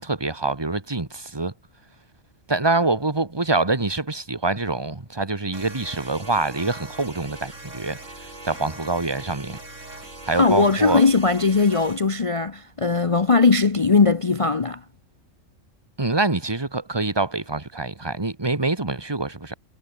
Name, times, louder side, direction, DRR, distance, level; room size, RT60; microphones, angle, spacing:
voice 1, 0.0-1.5 2.5-9.6 9.9-10.0 10.3-11.0 16.0-19.5, right 3 dB, 20° right, 1.7 m, -25 dB
sound 1, 5.5-12.0, right 2 dB, 65° right, 5.9 m, -41 dB
voice 2, 10.4-14.8, left 4 dB, 30° left, 0.7 m, -19 dB
omnidirectional pair, 1.4 m